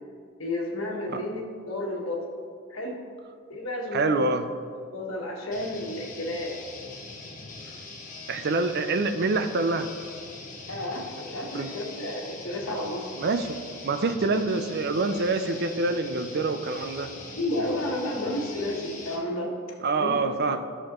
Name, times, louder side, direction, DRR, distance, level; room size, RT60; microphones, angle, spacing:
voice 1, 0.4-2.2 2.7-3.0 3.5-4.2 4.9-6.6 10.7-13.1 17.3-19.5 20.0-20.1, left 1 dB, 70° left, -1 dB, 1.5 m, -31 dB
voice 2, 3.9-4.5 8.3-9.9 11.5-11.7 13.2-17.1 19.8-20.7, right 3 dB, 50° right, 9 dB, 0.5 m, -26 dB
sound 1, 5.5-19.2, left 3 dB, 40° left, 1.2 m, -42 dB
12.0 x 6.6 x 3.0 m, 2.2 s
head